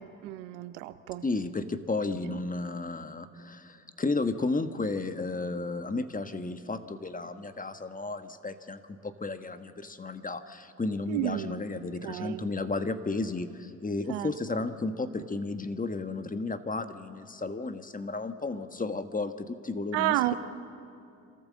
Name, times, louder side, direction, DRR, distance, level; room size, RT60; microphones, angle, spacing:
voice 1, 0.0-1.2 2.2-2.4 11.1-11.6 12.0-12.5 14.1-14.3 19.9-20.3, right 16 dB, 90° right, 13 dB, 0.7 m, -31 dB
voice 2, 1.2-20.3, left 3 dB, 20° left, 9 dB, 1.4 m, -33 dB
26.0 x 13.5 x 7.6 m, 2.5 s
hypercardioid pair, 50°, 36 cm